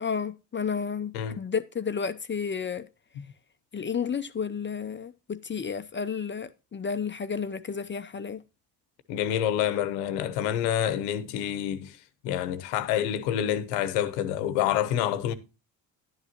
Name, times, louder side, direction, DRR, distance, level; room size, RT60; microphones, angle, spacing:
voice 1, 0.0-2.9 3.7-8.4, left 6 dB, 25° left, 0.6 m, -32 dB
voice 2, 9.1-12.0 12.2-15.3, left 10 dB, 85° left, 1.1 m, -27 dB
10.5 x 9.8 x 2.9 m
supercardioid pair, 70°, 47 cm